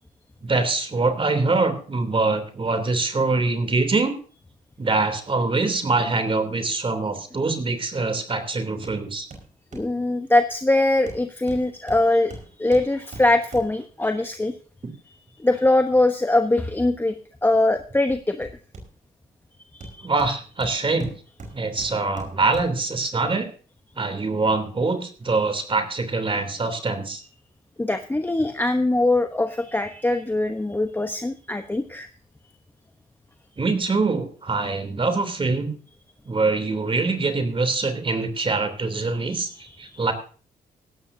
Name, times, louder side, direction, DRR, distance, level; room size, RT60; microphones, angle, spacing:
voice 1, 0.4-4.1 4.8-9.3 20.0-21.1 21.5-23.5 24.0-27.2 33.6-35.7 36.2-40.1, right 3 dB, 35° right, 7 dB, 3.1 m, -24 dB
Hammer, 8.8-9.0 9.3-10.0 11.1-14.0 17.8-19.2 19.8-22.9 23.4-23.5, right 2 dB, 55° right, 5.0 m, -42 dB
voice 2, 9.7-14.5 15.4-17.1 17.4-18.5 19.7-20.1 27.8-32.1 39.3-40.0, left 2 dB, 15° left, 7 dB, 1.0 m, -22 dB
16.0 x 13.5 x 2.7 m, 0.40 s
supercardioid pair, 65°, 16 cm